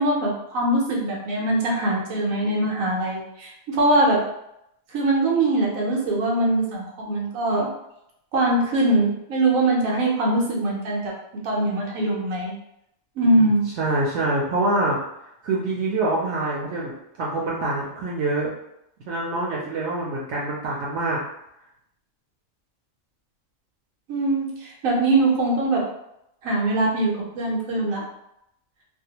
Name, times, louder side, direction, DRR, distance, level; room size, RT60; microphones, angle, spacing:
voice 1, 0.0-4.2 4.9-7.7 8.3-11.1 11.4-12.5 13.2-13.6 24.1-25.8 26.4-28.0, right 2 dB, 90° right, -3 dB, 1.1 m, -22 dB
voice 2, 13.2-15.0 15.4-16.9 17.2-18.5 19.1-21.2, right 2 dB, 70° right, -4 dB, 0.8 m, -25 dB
2.6 x 2.1 x 2.8 m, 0.80 s
omnidirectional pair, 1.4 m